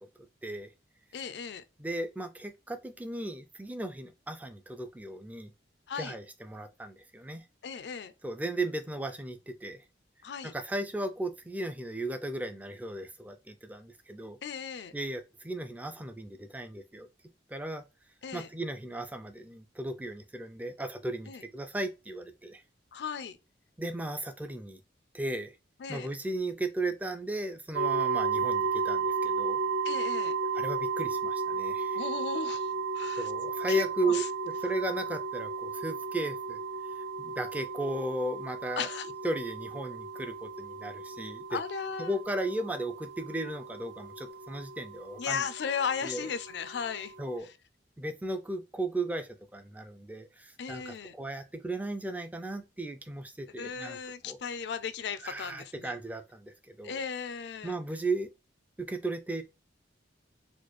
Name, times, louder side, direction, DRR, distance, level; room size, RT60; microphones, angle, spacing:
voice 1, 1.1-1.6 5.9-6.1 7.6-8.1 10.2-10.5 14.4-14.9 18.2-18.5 21.3-21.4 22.9-23.4 25.8-26.1 29.8-30.3 31.9-33.3 33.7-34.3 38.8-39.1 41.5-42.1 45.2-47.1 50.6-51.1 53.6-56.0 56.8-57.8, left 6 dB, 65° left, 0.4 m, -36 dB
voice 2, 1.8-5.5 6.0-7.4 8.2-9.8 10.4-14.4 14.9-17.1 17.5-17.8 18.3-22.6 23.8-24.8 25.1-25.6 25.9-29.6 30.5-32.0 33.2-36.6 37.0-38.9 39.2-41.6 42.0-45.4 46.0-46.3 47.2-47.5 48.0-54.0 54.2-54.4 55.2-57.0 57.6-58.3 58.8-59.4, right 2 dB, 10° right, 0.3 m, -35 dB
sound 1, 27.7-47.4, right 5 dB, 75° right, 0.4 m, -34 dB
4.2 x 2.3 x 3.0 m
head